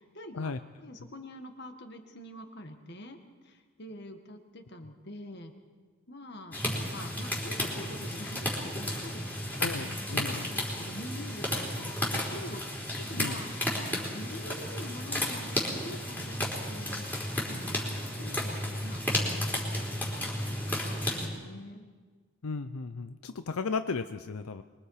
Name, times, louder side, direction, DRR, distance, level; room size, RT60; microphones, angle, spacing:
voice 1, 0.0-3.2 3.4-5.5 6.1-9.5 10.1-15.6 15.8-17.1 17.4-21.8, left 1 dB, 50° left, 6 dB, 1.9 m, -45 dB
sound 1, 6.5-21.3, left 1 dB, 10° left, 3.8 m, -33 dB
voice 2, 9.6-10.5 13.1-13.4 22.4-24.6, left 4 dB, 85° left, 11 dB, 0.6 m, -35 dB
24.5 x 23.0 x 4.9 m, 1.5 s
head